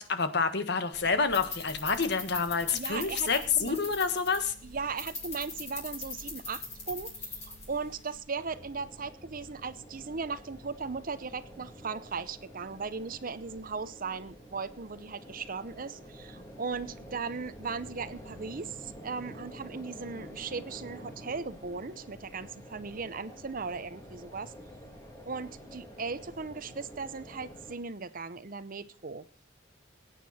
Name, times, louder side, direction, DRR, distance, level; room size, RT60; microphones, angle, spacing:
voice 1, 0.0-4.5, left 5 dB, 60° left, 10 dB, 1.4 m, -28 dB
sound 1, 0.9-8.2, left 3 dB, 40° left, 6.1 m, -42 dB
voice 2, 2.7-3.8 4.6-24.5 25.3-29.2, right 4 dB, 45° right, 14 dB, 0.8 m, -38 dB
sound 2, 8.3-27.8, equal, 20° left, 2.8 m, -48 dB
23.0 x 9.3 x 4.2 m, 0.41 s
head